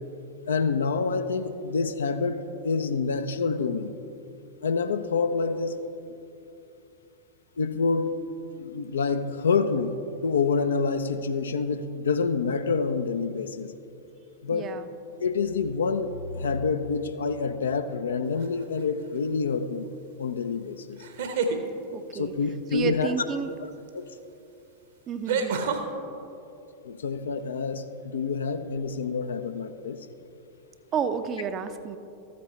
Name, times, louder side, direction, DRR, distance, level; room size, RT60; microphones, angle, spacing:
voice 1, 0.5-3.9 4.6-5.8 7.6-8.1 8.6-10.0 10.2-13.7 14.4-14.7 15.2-19.9 20.2-21.0 22.1-23.1 23.9-24.1 26.8-30.0, left 5 dB, 65° left, 9 dB, 0.5 m, -27 dB
voice 2, 14.5-14.9 21.9-22.3 22.7-23.5 25.1-25.6 30.9-32.0, right 6 dB, 30° right, 10 dB, 0.5 m, -30 dB
sound 1, 18.4-18.8 21.0-21.6 23.9-24.0 25.3-25.8, right 5 dB, 60° right, 0.9 m, -27 dB
13.5 x 8.4 x 3.1 m, 2.7 s
figure-of-eight pair, 90°, 0 cm